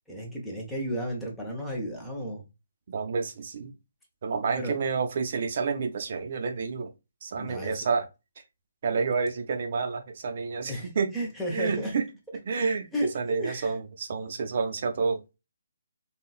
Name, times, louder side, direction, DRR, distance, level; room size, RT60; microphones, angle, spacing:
voice 1, 0.1-2.5 4.6-4.8 7.4-7.9 10.7-11.9 12.9-13.7, equal, ahead, 0.9 m, -33 dB
voice 2, 2.9-3.7 4.2-6.9 7.2-8.1 8.8-11.1 11.5-12.1 12.4-12.9 13.1-15.2, right 5 dB, 50° right, 0.7 m, -29 dB
3.8 x 2.4 x 2.4 m
hypercardioid pair, 160°, 0 cm